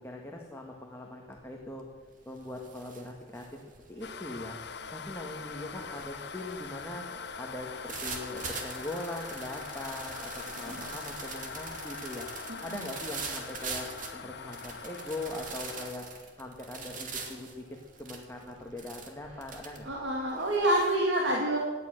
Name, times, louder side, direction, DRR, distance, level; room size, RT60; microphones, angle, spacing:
voice 1, 0.0-1.8 2.3-3.6 3.9-4.6 4.9-7.0 7.4-12.3 12.6-16.1 16.4-17.6 18.0-19.9, left 1 dB, 15° left, 0 dB, 1.7 m, -41 dB
sound 1, 1.3-1.7 2.0-21.0, right 4 dB, 45° right, 2.4 m, -43 dB
sound 2, 4.0-15.9, left 5 dB, 65° left, 1.0 m, -42 dB
voice 2, 19.8-21.6, right 1 dB, 70° right, -2 dB, 2.6 m, -27 dB
18.0 x 11.0 x 6.6 m, 1.5 s
head